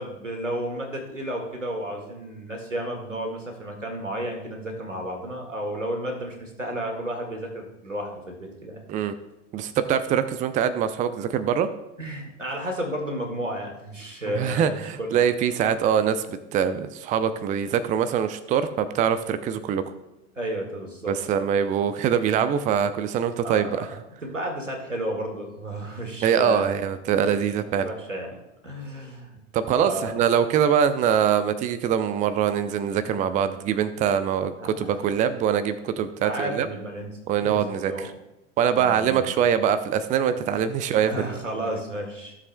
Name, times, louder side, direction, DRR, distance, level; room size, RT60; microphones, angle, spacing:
voice 1, 0.0-8.8 12.0-15.2 20.4-21.2 23.4-23.8 24.2-26.8 27.2-27.4 27.8-28.4 28.6-29.4 29.7-30.1 34.1-34.2 34.6-35.0 36.2-37.1 37.4-38.1 38.7-39.3 40.9-42.4, right 1 dB, 90° right, 2 dB, 1.9 m, -32 dB
voice 2, 9.5-11.7 14.3-19.8 21.1-23.9 26.2-27.9 29.5-36.7 37.3-38.1 38.6-41.4, right 8 dB, 20° right, 12 dB, 0.5 m, -23 dB
15.5 x 7.4 x 2.2 m, 0.92 s
figure-of-eight pair, 85°, 36 cm